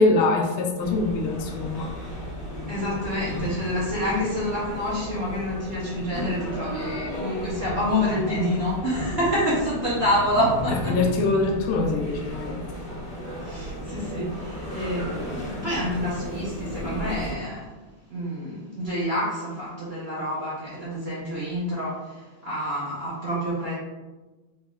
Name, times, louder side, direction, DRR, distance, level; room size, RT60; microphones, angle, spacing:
voice 1, 0.0-1.9 10.7-12.7, left 3 dB, 75° left, 3 dB, 1.4 m, -23 dB
sound 1, 0.8-17.3, left 1 dB, 60° left, 0.5 m, -34 dB
voice 2, 2.7-11.0 13.4-17.6 18.1-23.7, equal, 75° right, -10 dB, 0.5 m, -27 dB
3.8 x 3.5 x 2.3 m, 1.2 s
omnidirectional pair, 2.4 m